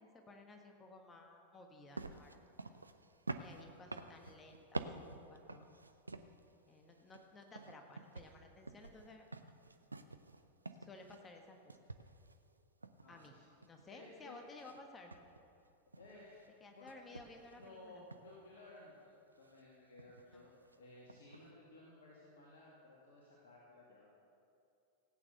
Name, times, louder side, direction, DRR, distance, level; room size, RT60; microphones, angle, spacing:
voice 1, 0.0-2.4 3.4-4.8 5.1-5.7 6.7-9.3 10.8-11.7 13.1-13.3 13.6-15.1 16.6-18.0 20.3-20.5, left 2 dB, 20° left, 3 dB, 1.4 m, -56 dB
sound 1, 2.0-6.5 6.9-11.4 11.7-14.1 14.6-14.8 15.1-16.5 16.9-17.7 18.1-18.3 19.4-19.6 20.0-20.4 20.7-20.8 21.1-21.4, right 3 dB, 80° right, 0.6 m, -48 dB
voice 2, 13.0-13.5 13.9-14.4 16.0-16.4 16.7-16.9 17.6-24.1, left 2 dB, 60° left, -5 dB, 2.5 m, -57 dB
17.5 x 9.0 x 6.8 m, 2.5 s
figure-of-eight pair, 90°, 0 cm